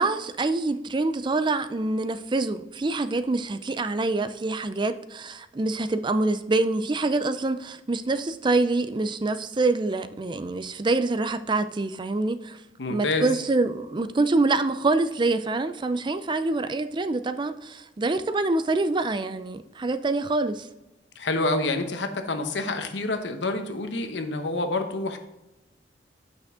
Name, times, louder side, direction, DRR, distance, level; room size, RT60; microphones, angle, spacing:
voice 1, 0.0-12.6 12.9-20.7, right 3 dB, 25° right, 0.4 m, -25 dB
voice 2, 12.8-13.3 21.2-25.2, left 2 dB, 85° left, 1.0 m, -27 dB
8.4 x 6.2 x 3.7 m
head